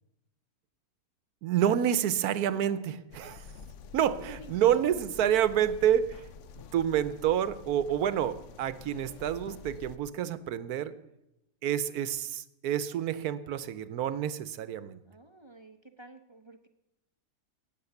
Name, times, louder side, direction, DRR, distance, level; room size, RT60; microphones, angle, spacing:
voice 1, 1.4-3.5 3.9-6.3 6.7-10.9 11.6-15.0, right 10 dB, 85° right, 14 dB, 1.2 m, -28 dB
voice 2, 2.5-2.9 4.2-5.0 15.1-16.7, right 1 dB, 40° right, 7 dB, 0.4 m, -51 dB
sound 1, 3.1-10.0, left 5 dB, 65° left, 0.9 m, -48 dB
14.5 x 9.2 x 7.1 m, 0.91 s
omnidirectional pair, 1.6 m